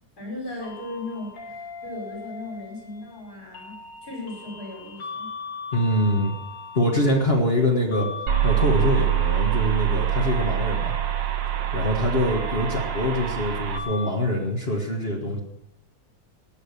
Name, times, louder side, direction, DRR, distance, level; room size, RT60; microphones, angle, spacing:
voice 1, 0.2-5.3 14.7-14.8, left 2 dB, 55° left, -2 dB, 5.8 m, -37 dB
sound 1, 0.6-14.1, left 5 dB, 90° left, 2.5 m, -40 dB
voice 2, 5.7-6.3 6.7-8.1 8.4-10.9 11.7-15.4, left 1 dB, 35° left, -1 dB, 1.7 m, -24 dB
sound 2, 8.3-13.8, right 11 dB, 85° right, 1.7 m, -25 dB
18.5 x 6.7 x 7.0 m, 0.86 s
omnidirectional pair, 1.9 m